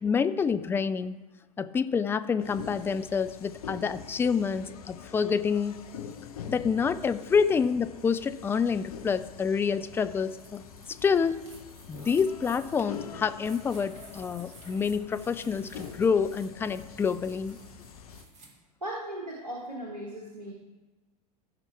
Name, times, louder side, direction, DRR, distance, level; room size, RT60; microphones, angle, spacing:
voice 1, 0.0-1.2 1.6-5.8 6.5-11.5 11.9-17.6, left 6 dB, 10° left, 11 dB, 0.4 m, -27 dB
sound 1, 2.4-18.2, left 7 dB, 65° left, 0.9 m, -45 dB
sound 2, 10.3-18.5, right 3 dB, 35° right, 2.3 m, -54 dB
voice 2, 18.8-20.5, right 1 dB, 80° right, -2 dB, 1.5 m, -37 dB
15.5 x 5.9 x 3.4 m, 1.2 s
figure-of-eight pair, 85°, 20 cm